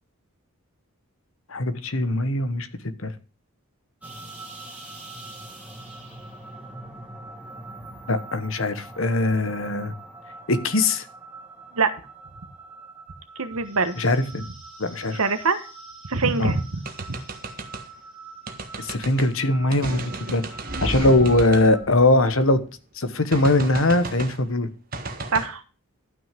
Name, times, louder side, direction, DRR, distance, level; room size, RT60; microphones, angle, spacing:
voice 1, 1.5-2.7 3.0-3.1 8.1-9.9 10.5-11.1 14.0-14.5 14.8-15.2 16.4-16.5 18.8-20.4 20.8-22.6 23.0-24.7, left 2 dB, 70° left, 12 dB, 1.3 m, -21 dB
sound 1, 4.0-21.8, right 3 dB, 5° right, 2.8 m, -43 dB
voice 2, 13.4-14.0 15.1-15.7 16.1-16.8 17.1-17.2 21.0-21.1 25.3-25.6, right 4 dB, 80° right, 10 dB, 1.3 m, -24 dB
sound 2, 16.8-17.9 18.5-19.3 19.7-22.6 23.3-24.4 24.9-25.5, right 2 dB, 40° right, 1.5 m, -33 dB
12.5 x 6.2 x 5.2 m, 0.35 s
head